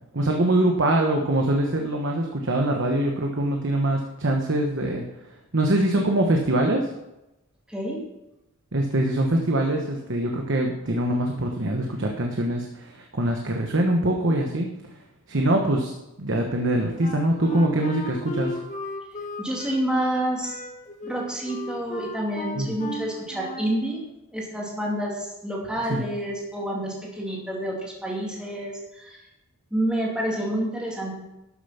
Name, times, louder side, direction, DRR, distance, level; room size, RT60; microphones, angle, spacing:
voice 1, 0.1-5.0 5.5-6.9 8.7-14.7 15.3-15.9 16.2-18.6 22.5-22.7 25.9-26.0, right 1 dB, 55° right, 1 dB, 1.1 m, -23 dB
Wind instrument woodwind instrument, 17.0-23.8, left 1 dB, 35° left, 1.4 m, -35 dB
voice 2, 19.4-20.6 21.0-24.0 24.3-29.2 29.7-31.1, right 1 dB, 5° right, -3 dB, 2.5 m, -28 dB
12.5 x 7.0 x 5.8 m, 0.93 s
head